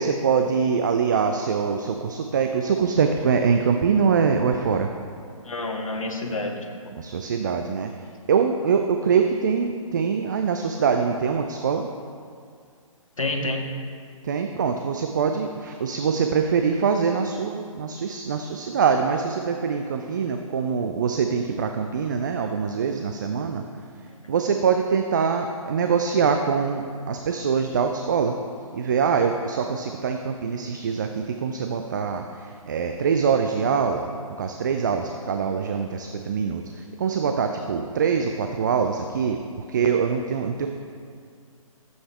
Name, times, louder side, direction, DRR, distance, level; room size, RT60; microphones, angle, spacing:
voice 1, 0.0-4.9 7.0-11.9 14.2-23.6 24.3-28.4 28.7-34.1 34.4-39.4 39.7-40.7, right 6 dB, 35° right, 5 dB, 0.4 m, -24 dB
voice 2, 5.3-6.9 13.2-13.7 24.2-24.3, left 2 dB, 65° left, 2 dB, 1.4 m, -29 dB
13.0 x 8.0 x 3.4 m, 2.3 s
figure-of-eight pair, 135°, 18 cm